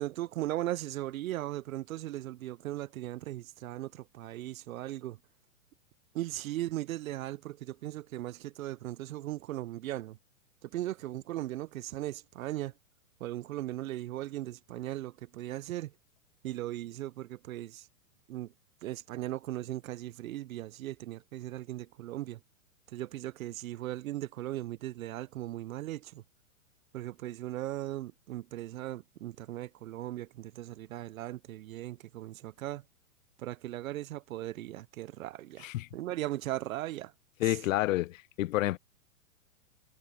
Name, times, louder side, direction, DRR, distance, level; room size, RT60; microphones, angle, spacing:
voice 1, 0.0-5.2 6.1-10.2 10.6-12.7 13.2-15.9 16.4-17.9 18.3-18.5 18.8-22.4 22.9-26.2 26.9-32.8 33.4-37.1 37.4-37.6, right 15 dB, 70° right, 0.7 m, -38 dB
voice 2, 37.4-38.8, left 16 dB, 65° left, 0.6 m, -29 dB
hypercardioid pair, 135°, 42 cm